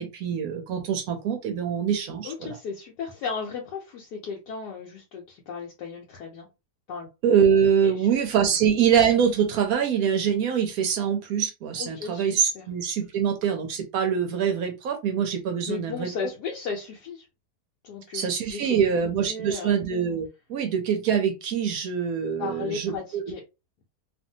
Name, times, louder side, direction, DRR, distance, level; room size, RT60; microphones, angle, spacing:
voice 1, 0.0-2.6 7.2-16.1 18.1-23.2, right 7 dB, 70° right, 0.9 m, -24 dB
voice 2, 2.2-6.5 6.9-7.1 7.8-8.1 8.5-8.6 11.8-12.7 15.7-17.3 17.8-19.7 22.4-23.4, left 5 dB, 75° left, 1.2 m, -35 dB
2.7 x 2.5 x 2.7 m
omnidirectional pair, 1.8 m